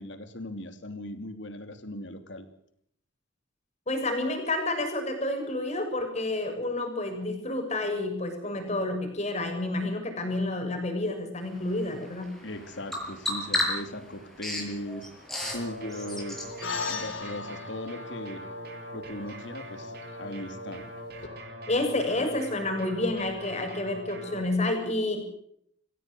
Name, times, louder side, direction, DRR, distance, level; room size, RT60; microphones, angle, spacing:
voice 1, 0.0-2.5 12.4-15.1 15.5-16.5 16.8-18.4 18.9-19.9 20.2-20.9, left 1 dB, 65° left, 8 dB, 3.1 m, -38 dB
voice 2, 3.9-12.3 21.7-25.2, left 2 dB, 35° left, 4 dB, 6.9 m, -29 dB
Bird vocalization bird call bird song, 11.4-17.0, left 1 dB, ahead, 6.6 m, -35 dB
sound 1, 15.4-24.4, equal, 55° right, 6.8 m, -42 dB
sound 2, 16.6-21.3, left 5 dB, 85° left, 4.0 m, -39 dB
25.0 x 16.5 x 8.0 m, 0.69 s
head